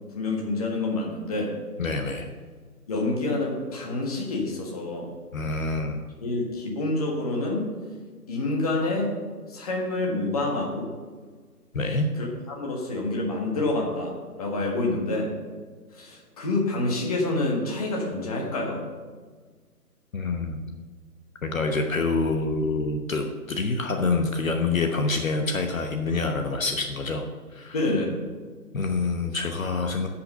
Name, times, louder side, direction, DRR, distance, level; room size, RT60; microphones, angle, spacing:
voice 1, 0.1-1.5 2.9-5.1 6.2-7.7 8.3-9.1 9.5-10.9 12.2-15.3 15.9-18.8 27.7-28.2, left 2 dB, 25° left, -1 dB, 1.5 m, -27 dB
voice 2, 1.8-2.3 5.3-6.0 11.7-12.1 20.1-20.7 21.4-27.8 28.7-30.1, left 3 dB, 55° left, 4 dB, 1.1 m, -26 dB
10.0 x 5.8 x 6.7 m, 1.5 s
figure-of-eight pair, 160°, 47 cm